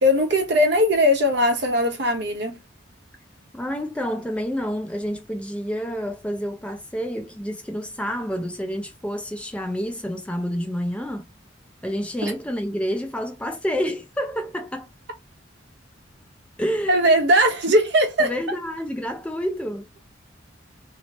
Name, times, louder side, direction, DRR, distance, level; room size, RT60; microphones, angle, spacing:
voice 1, 0.0-2.6 12.2-12.3 16.9-18.3, equal, 60° right, 0.8 m, -19 dB
voice 2, 3.5-11.3 11.8-14.9 16.6-17.1 18.2-19.9, equal, 5° left, 0.3 m, -28 dB
2.9 x 2.0 x 2.8 m
head